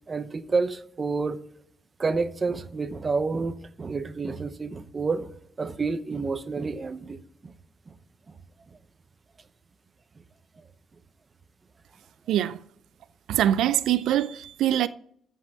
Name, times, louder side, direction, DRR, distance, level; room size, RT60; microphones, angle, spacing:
voice 1, 0.1-1.4 2.0-5.3 5.6-7.5, right 4 dB, 30° right, 0.7 m, -29 dB
voice 2, 12.3-12.6 13.3-14.9, right 11 dB, 85° right, 0.4 m, -23 dB
13.0 x 5.5 x 7.3 m
cardioid pair, 135°, 0 cm